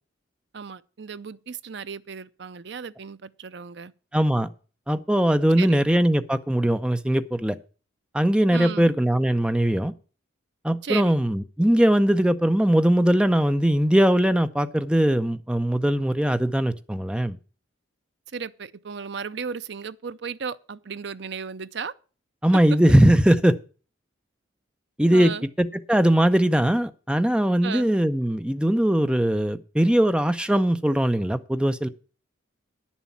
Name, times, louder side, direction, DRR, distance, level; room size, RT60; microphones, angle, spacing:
voice 1, 0.5-3.9 5.6-5.8 8.5-8.9 10.8-11.2 18.3-21.9 25.1-25.5 27.6-28.0, right 6 dB, 60° right, 0.5 m, -35 dB
voice 2, 4.1-4.5 4.9-7.6 8.1-9.9 10.6-17.4 22.4-23.6 25.0-25.3 25.6-31.9, right 1 dB, 5° right, 0.6 m, -20 dB
10.0 x 7.2 x 7.2 m
head